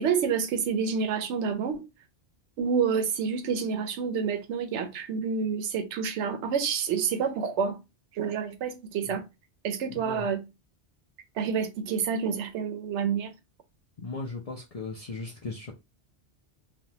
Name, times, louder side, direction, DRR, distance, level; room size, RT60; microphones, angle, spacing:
voice 1, 0.0-1.8 2.6-7.8 8.1-9.3 9.6-10.5 11.4-13.3, right 6 dB, 80° right, 0.9 m, -28 dB
voice 2, 9.9-10.3 14.0-15.7, left 3 dB, 45° left, 0.5 m, -37 dB
3.3 x 2.2 x 2.7 m
omnidirectional pair, 1.2 m